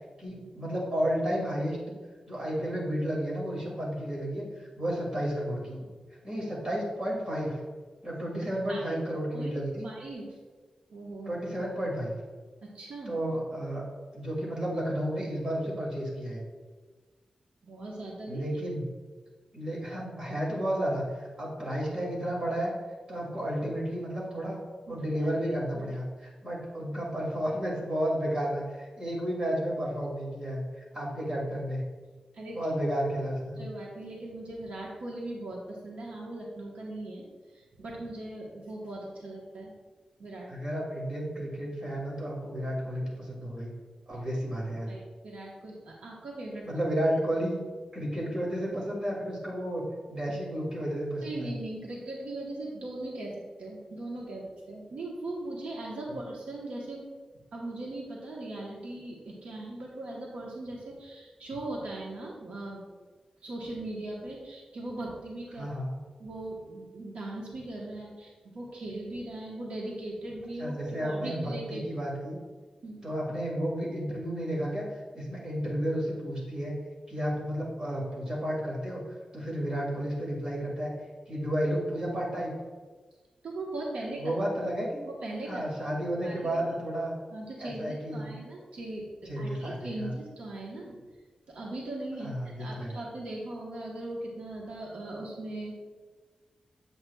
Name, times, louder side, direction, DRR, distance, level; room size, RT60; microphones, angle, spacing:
voice 1, 0.2-1.8 2.3-5.9 6.2-7.6 8.0-9.9 11.3-12.1 13.1-13.8 14.1-16.4 18.3-18.9 19.5-22.7 23.1-24.6 24.9-31.8 32.6-33.7 40.5-43.7 44.1-44.9 46.6-47.6 47.9-49.8 50.1-51.5 65.6-66.0 70.6-72.4 73.0-74.9 75.1-76.8 77.1-79.0 79.3-80.9 81.3-82.5 84.2-85.0 85.5-87.1 87.6-88.4 89.3-90.2 92.2-93.0, equal, 35° right, -4 dB, 2.0 m, -32 dB
voice 2, 9.8-10.2 10.9-11.4 12.7-13.1 17.6-18.4 24.9-25.3 25.7-25.9 32.3-32.6 33.6-37.2 37.5-39.7 40.2-40.5 44.1-44.2 44.9-46.7 51.2-57.1 57.5-62.8 63.4-65.7 66.2-71.8 72.8-73.0 83.4-84.3 84.6-84.7 85.0-85.6 86.2-86.6 87.3-90.9 91.5-92.3 92.6-95.8, right 2 dB, 85° right, -3 dB, 1.1 m, -39 dB
7.7 x 7.5 x 2.3 m, 1.4 s
wide cardioid pair, 170°, 2 cm